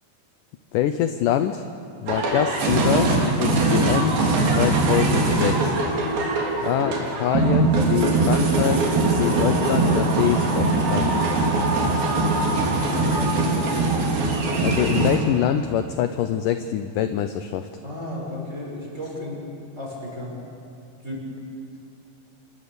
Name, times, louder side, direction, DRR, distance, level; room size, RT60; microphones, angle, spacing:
voice 1, 0.7-1.7 2.0-3.1 3.4-4.2 4.6-5.7 6.2-6.3 6.6-8.9 9.2-11.1 14.6-17.7, left 10 dB, 75° left, 9 dB, 2.0 m, -24 dB
sound 1, 2.1-15.2, right 2 dB, 65° right, 4.9 m, -21 dB
voice 2, 12.6-13.5 17.8-19.4 19.8-20.4 21.0-21.2, left 1 dB, 15° right, -3 dB, 7.0 m, -34 dB
27.0 x 22.0 x 7.0 m, 2.6 s
omnidirectional pair, 4.5 m